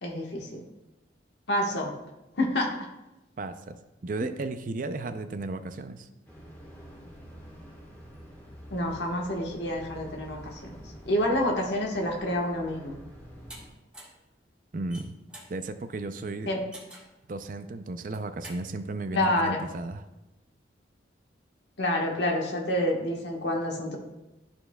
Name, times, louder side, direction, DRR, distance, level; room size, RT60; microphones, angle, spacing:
voice 1, 0.0-0.6 1.5-1.9 2.4-2.7 8.7-10.6 11.1-12.9 16.5-16.6 19.1-19.6 21.8-24.0, left 1 dB, 65° left, 0 dB, 1.3 m, -28 dB
voice 2, 3.4-6.1 14.7-15.2 15.5-16.5 17.3-20.0, right 2 dB, 45° right, 10 dB, 0.4 m, -34 dB
sound 1, 6.3-13.7, equal, 10° left, 1.3 m, -47 dB
sound 2, 13.5-13.6 13.9-14.2 14.7-15.5 16.7-17.1 18.0-18.6, right 1 dB, 5° right, 1.4 m, -46 dB
13.0 x 4.4 x 2.2 m, 0.98 s
head